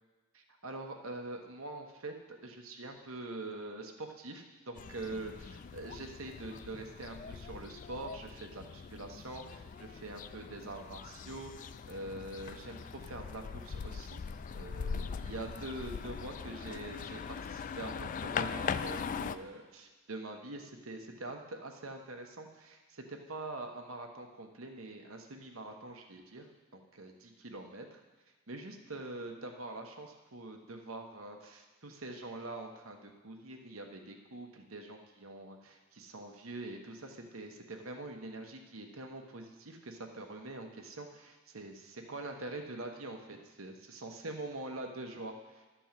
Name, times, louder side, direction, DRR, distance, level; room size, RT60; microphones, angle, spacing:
voice 1, 0.3-14.2 14.5-26.5 26.7-28.0 28.5-45.6, right 2 dB, 85° right, 3 dB, 1.1 m, -44 dB
sound 1, 4.8-19.4, left 6 dB, 40° left, 0.3 m, -41 dB
11.5 x 4.6 x 7.4 m, 1.2 s
head